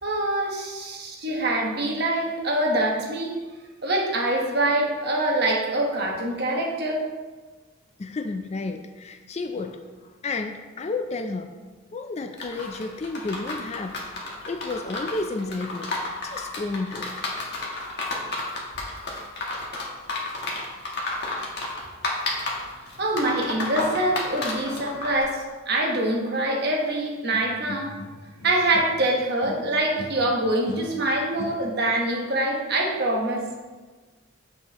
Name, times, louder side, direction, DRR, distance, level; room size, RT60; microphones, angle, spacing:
voice 1, 0.0-3.4 3.8-7.0 23.0-27.9 28.4-33.4, right 1 dB, 50° right, -1 dB, 1.2 m, -25 dB
voice 2, 8.0-11.6 11.9-14.0 14.5-15.9 16.2-17.2, left 3 dB, 30° left, 7 dB, 0.3 m, -31 dB
sound 1, 12.4-25.2, left 2 dB, 50° left, 1.3 m, -31 dB
sound 2, 27.3-29.1 29.4-32.0, left 2 dB, 85° left, 1.0 m, -39 dB
7.6 x 6.6 x 3.0 m, 1.3 s
head